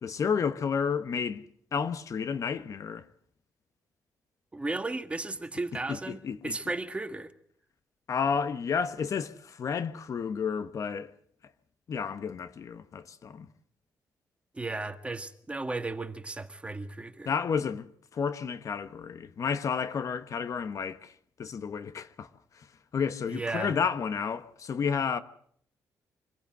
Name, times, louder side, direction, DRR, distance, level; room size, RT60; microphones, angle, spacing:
voice 1, 0.0-1.4 1.7-3.1 5.9-6.6 8.1-11.1 11.9-13.5 17.2-21.1 21.4-22.3 22.5-22.7 22.9-25.2, left 6 dB, 55° left, 1.1 m, -31 dB
voice 2, 4.5-7.3 14.5-17.3 23.3-23.7, right 2 dB, 20° right, 1.8 m, -35 dB
25.0 x 15.5 x 7.8 m
cardioid pair, 90°, 7 cm